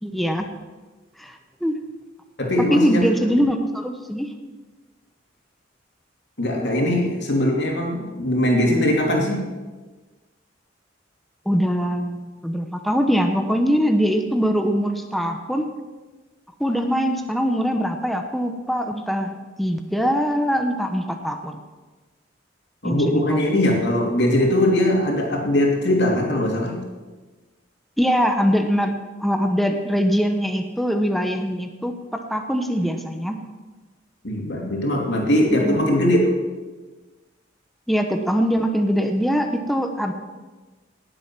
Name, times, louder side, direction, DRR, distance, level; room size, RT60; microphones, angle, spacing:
voice 1, 0.0-0.5 1.2-1.8 2.6-4.3 11.5-15.7 16.6-21.6 22.8-23.4 28.0-28.9 29.2-33.4 35.6-35.8 37.9-40.1, equal, ahead, 5 dB, 0.8 m, -22 dB
voice 2, 2.4-3.0 6.4-9.4 22.8-26.8 34.2-36.2, left 1 dB, 60° left, 0 dB, 2.8 m, -20 dB
18.5 x 7.8 x 5.9 m, 1.3 s
head